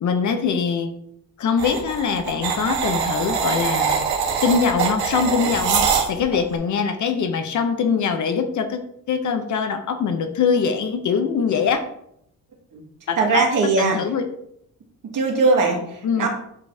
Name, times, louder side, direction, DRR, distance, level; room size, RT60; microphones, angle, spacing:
voice 1, 0.0-0.9 1.4-4.0 4.4-8.8 9.1-11.8 13.1-13.4 13.8-14.2 16.0-16.3, left 6 dB, 55° left, 8 dB, 0.8 m, -22 dB
sound 1, 1.6-6.4, right 6 dB, 85° right, 1.4 m, -23 dB
voice 2, 13.2-14.0 15.0-16.3, right 3 dB, 60° right, 0 dB, 1.9 m, -20 dB
8.3 x 5.2 x 2.7 m, 0.75 s
cardioid pair, 115°, 36 cm